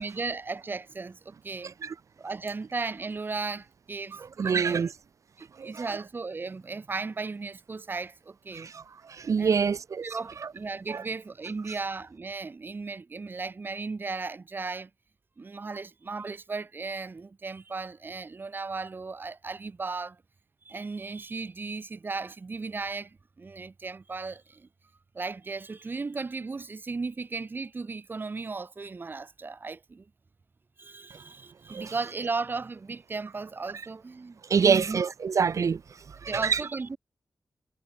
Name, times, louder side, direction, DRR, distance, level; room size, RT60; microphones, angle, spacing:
voice 1, 0.0-1.7 2.2-4.9 5.4-8.7 9.4-9.7 10.0-14.9 15.4-20.2 20.7-24.7 25.1-30.0 30.8-35.0 36.3-37.0, right 4 dB, 35° right, 1.9 m, -36 dB
voice 2, 4.1-4.9 5.6-5.8 8.5-10.1 10.9-11.0 31.7-31.9 34.5-35.8 36.2-36.6, right 6 dB, 65° right, 2.1 m, -26 dB
wide cardioid pair, 145°, 6 cm